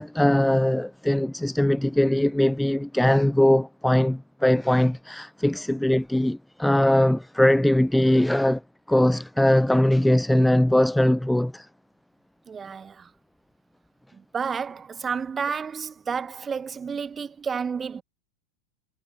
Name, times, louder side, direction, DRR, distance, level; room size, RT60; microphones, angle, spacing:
voice 1, 0.0-8.6 8.9-11.7, left 1 dB, 5° left, 0.4 m, -21 dB
voice 2, 12.5-13.1 14.1-18.0, right 6 dB, 20° right, 2.4 m, -31 dB
figure-of-eight pair, 90°, 0 cm